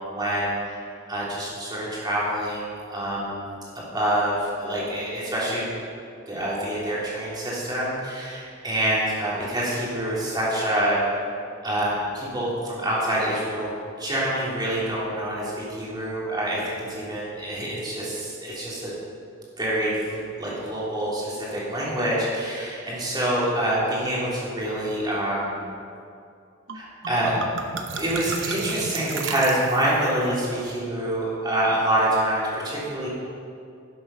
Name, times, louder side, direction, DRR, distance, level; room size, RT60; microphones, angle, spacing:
voice 1, 0.1-0.8 1.1-3.4 3.7-5.8 6.3-11.0 11.6-13.7 14.0-18.9 19.6-25.7 26.7-27.3 27.9-33.1, right 1 dB, 20° right, -7 dB, 3.0 m, -26 dB
sound 1, 26.7-26.8 27.0-30.1, right 4 dB, 70° right, 0.9 m, -33 dB
11.5 x 7.7 x 5.6 m, 2.5 s
head